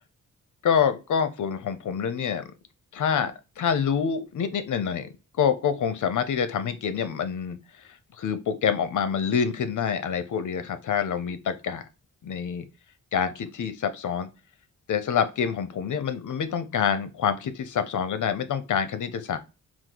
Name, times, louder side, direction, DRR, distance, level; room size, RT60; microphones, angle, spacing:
voice 1, 0.6-2.5 2.9-3.3 3.6-5.1 5.4-7.6 8.2-11.8 12.2-12.6 13.1-14.3 14.9-19.4, left 7 dB, 75° left, 0.7 m, -26 dB
4.7 x 2.0 x 3.8 m
wide cardioid pair, 120°, 31 cm